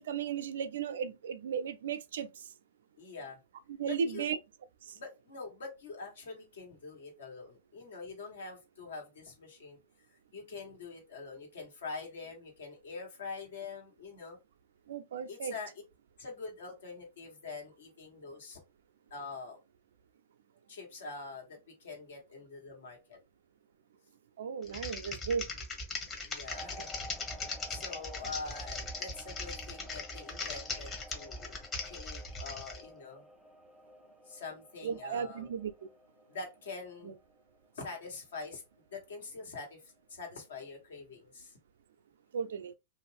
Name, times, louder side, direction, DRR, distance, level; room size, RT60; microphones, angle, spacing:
voice 1, 0.0-2.5 3.7-4.4 4.8-5.0 14.9-15.5 24.4-25.5 34.8-35.7 37.0-37.1 42.3-42.7, right 7 dB, 70° right, 0.4 m, -35 dB
voice 2, 3.0-3.4 3.9-4.3 4.9-9.8 10.3-14.4 15.3-15.7 16.2-18.6 19.1-19.6 20.7-23.2 26.2-26.9 27.2-27.4 27.7-31.6 31.8-33.2 34.2-35.5 36.3-37.1 37.7-38.6 38.9-41.6, left 4 dB, 75° left, 1.4 m, -45 dB
Typing, 24.6-32.8, left 3 dB, 25° left, 1.0 m, -40 dB
sound 1, 26.5-37.8 38.2-38.5, left 1 dB, 10° left, 0.3 m, -53 dB
2.5 x 2.4 x 3.3 m
hypercardioid pair, 100°, 0 cm